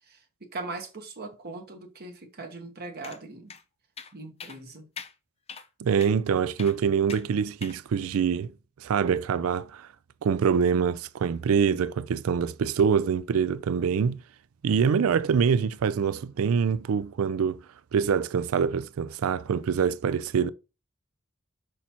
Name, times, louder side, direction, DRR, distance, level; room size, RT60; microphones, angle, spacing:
voice 1, 0.1-3.5 4.1-4.8, right 3 dB, 50° right, 1.1 m, -40 dB
sound 1, 3.0-3.2 3.5-3.6 4.0-4.1 4.4-4.6 5.0-5.1 5.5-5.7 6.0-6.2 6.6-6.8 7.1-7.2 7.6-7.8, left 6 dB, 30° left, 0.5 m, -42 dB
voice 2, 5.8-9.9 10.2-14.2 14.6-17.6 17.9-20.5, right 6 dB, 70° right, 0.4 m, -25 dB
6.2 x 5.7 x 2.9 m
head